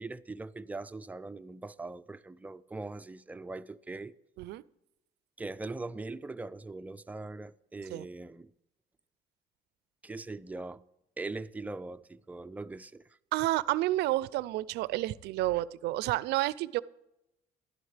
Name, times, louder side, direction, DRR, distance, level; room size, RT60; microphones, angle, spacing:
voice 1, 0.0-4.1 5.4-8.5 10.0-10.8 11.2-13.1, right 3 dB, 10° right, 0.4 m, -41 dB
voice 2, 13.3-16.8, right 16 dB, 80° right, 0.4 m, -30 dB
11.5 x 11.0 x 3.3 m
cardioid pair, 110°, 17 cm